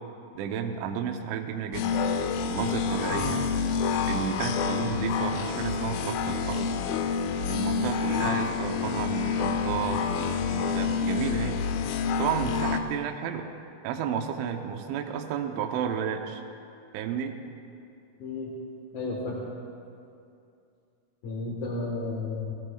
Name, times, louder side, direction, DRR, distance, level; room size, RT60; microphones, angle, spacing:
voice 1, 0.4-2.1 2.5-3.4 4.1-6.7 7.5-11.6 12.2-13.5 13.8-16.4 16.9-17.4, right 8 dB, 85° right, 4 dB, 3.2 m, -32 dB
sound 1, 1.7-12.8, left 6 dB, 85° left, 2.1 m, -28 dB
voice 2, 3.1-3.5 18.2-18.5 18.9-19.4 21.2-22.5, left 2 dB, 65° left, -2 dB, 1.8 m, -32 dB
28.5 x 19.0 x 2.3 m, 2.5 s
omnidirectional pair, 5.4 m